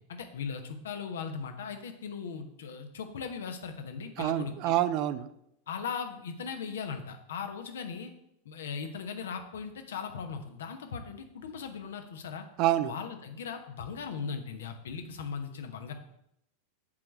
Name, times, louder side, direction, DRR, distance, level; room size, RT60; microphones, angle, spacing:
voice 1, 0.1-4.8 5.7-8.1 8.4-12.5 12.8-15.9, left 6 dB, 60° left, 6 dB, 1.0 m, -38 dB
voice 2, 4.2-5.3 12.6-12.9, right 13 dB, 40° right, 13 dB, 0.5 m, -27 dB
7.4 x 4.7 x 6.4 m, 0.79 s
figure-of-eight pair, 90°, 0 cm